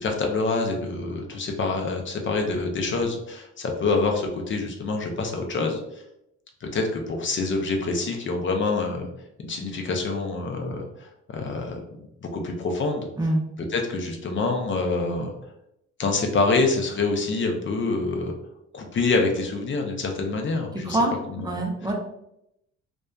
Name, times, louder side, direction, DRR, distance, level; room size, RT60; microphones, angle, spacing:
voice 1, 0.0-6.0 6.6-9.1 9.4-11.8 12.2-13.1 13.7-15.3 16.0-18.3 18.7-21.0 21.3-21.6, left 3 dB, 40° left, 2 dB, 0.5 m, -26 dB
voice 2, 20.9-21.9, right 1 dB, 15° right, 1 dB, 0.5 m, -25 dB
2.6 x 2.2 x 2.3 m, 0.81 s
cardioid pair, 90°, 30 cm